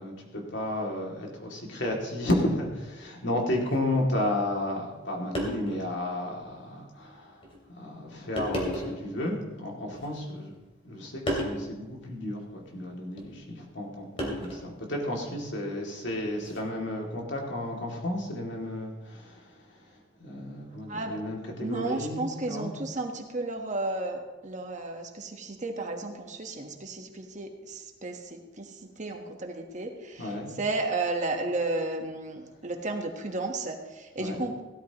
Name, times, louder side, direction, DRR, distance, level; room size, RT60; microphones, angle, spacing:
voice 1, 0.0-7.4 7.7-10.5 10.8-19.9 20.2-22.7 30.2-30.5 34.2-34.4, left 1 dB, 65° left, -1 dB, 2.5 m, -32 dB
sound 1, 3.6-3.8 4.9-5.0 5.3-5.8 6.4-6.5 7.4-7.6 8.4-9.1 9.9-10.6 11.3-11.6 13.1-13.3 14.2-14.8 16.3-16.6, equal, 30° left, 2.9 m, -33 dB
voice 2, 21.6-34.6, right 2 dB, 40° right, 3 dB, 1.3 m, -33 dB
16.5 x 13.0 x 3.0 m, 1.2 s
head